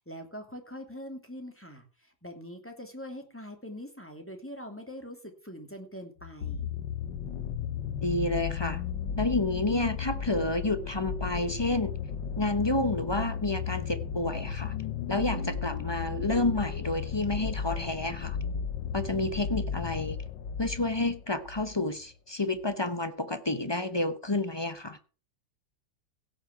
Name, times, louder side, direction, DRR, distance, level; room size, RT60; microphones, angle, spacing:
voice 1, 0.0-6.7, equal, 5° left, 2.4 m, -43 dB
sound 1, 6.2-21.8 22.6-22.7, left 7 dB, 90° left, 1.8 m, -34 dB
voice 2, 8.0-8.8 9.2-12.0 12.4-14.8 15.1-18.4 18.9-20.2 20.6-25.0, left 2 dB, 25° left, 0.5 m, -30 dB
16.5 x 6.2 x 6.0 m
omnidirectional pair, 1.9 m